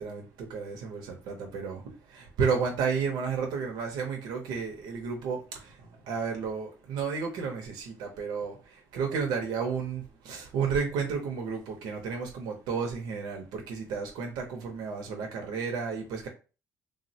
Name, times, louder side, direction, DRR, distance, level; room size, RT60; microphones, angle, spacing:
voice 1, 0.0-1.8 2.1-5.7 6.1-16.3, right 5 dB, 85° right, 0.6 m, -32 dB
3.4 x 2.0 x 2.6 m
cardioid pair, 150°, 7 cm